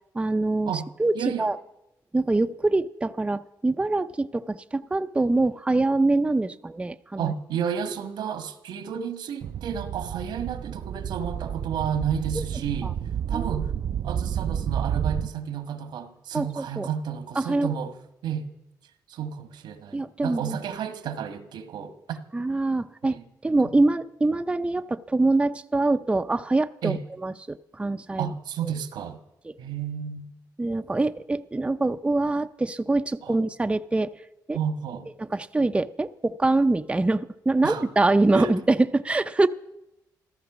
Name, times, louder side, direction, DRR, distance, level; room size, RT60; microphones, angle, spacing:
voice 1, 0.1-0.7 1.0-1.6 2.1-7.3 12.3-12.4 12.8-12.9 13.3-13.5 16.3-16.9 17.4-17.7 19.9-20.6 22.3-28.3 29.5-29.6 30.6-34.1 34.5-34.6 35.2-39.5, right 2 dB, 15° right, 0.6 m, -24 dB
voice 2, 1.1-1.5 7.2-12.9 13.3-13.7 14.0-17.9 18.2-18.5 19.1-22.2 23.0-23.2 26.8-27.0 28.2-29.2 29.6-30.4 33.2-33.4 34.5-35.1 37.6-37.9 38.3-38.5, right 8 dB, 90° right, 1.5 m, -31 dB
sound 1, 9.4-15.3, right 9 dB, 65° right, 0.5 m, -30 dB
14.5 x 13.5 x 6.1 m
cardioid pair, 85°, 7 cm